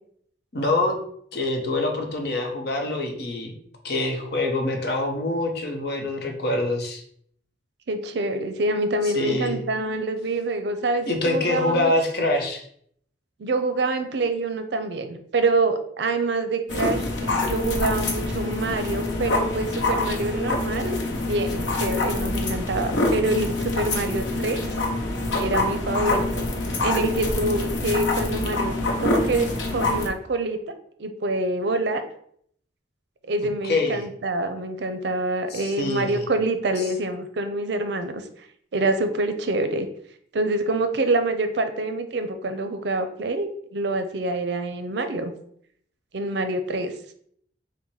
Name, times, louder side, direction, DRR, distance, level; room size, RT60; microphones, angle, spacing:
voice 1, 0.5-1.0 1.3-3.5 3.8-7.0 9.0-9.6 11.1-12.6 33.6-34.0 35.5-36.2, left 2 dB, 60° left, 2 dB, 0.8 m, -25 dB
voice 2, 7.9-11.9 13.4-21.0 21.3-24.6 25.4-26.5 26.8-30.6 31.0-32.0 33.3-38.2 38.7-39.9 40.3-45.3 46.1-46.9, right 2 dB, 65° right, 9 dB, 0.5 m, -26 dB
sound 1, 16.7-30.1, left 2 dB, 90° left, 0.8 m, -26 dB
4.1 x 2.1 x 4.5 m, 0.65 s
head